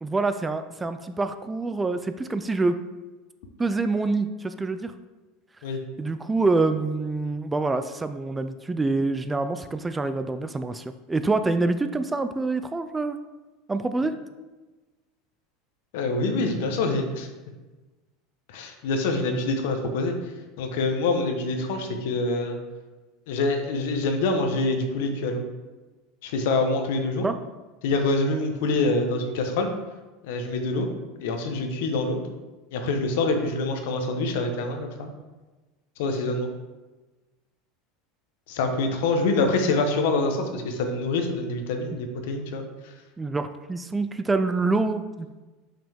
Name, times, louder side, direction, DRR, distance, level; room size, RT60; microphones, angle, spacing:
voice 1, 0.0-2.8 3.6-4.9 6.0-13.2 13.7-14.1 27.2-27.4 43.2-45.4, right 3 dB, 10° right, 10 dB, 0.3 m, -26 dB
voice 2, 15.9-17.3 18.5-20.1 20.6-22.6 23.3-25.4 26.2-27.2 27.8-29.7 30.2-30.9 31.2-32.2 32.7-35.1 36.0-36.5 38.5-42.9, left 3 dB, 75° left, 5 dB, 1.0 m, -25 dB
5.7 x 5.2 x 3.5 m, 1.2 s
supercardioid pair, 135°, 0 cm